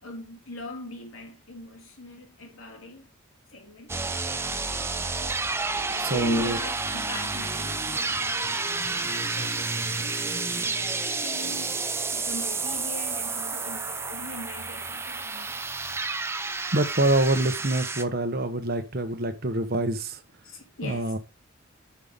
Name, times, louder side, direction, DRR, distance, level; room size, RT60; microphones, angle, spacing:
voice 1, 0.0-3.1 3.5-3.9 5.8-8.6 9.0-11.8 12.1-15.8 20.4-21.1, equal, 85° left, 3.1 m, -39 dB
sound 1, 3.9-18.0, right 3 dB, 10° right, 0.5 m, -30 dB
voice 2, 5.9-6.6 16.7-20.2 20.8-21.2, right 2 dB, 45° right, 1.1 m, -26 dB
9.2 x 5.7 x 3.6 m
head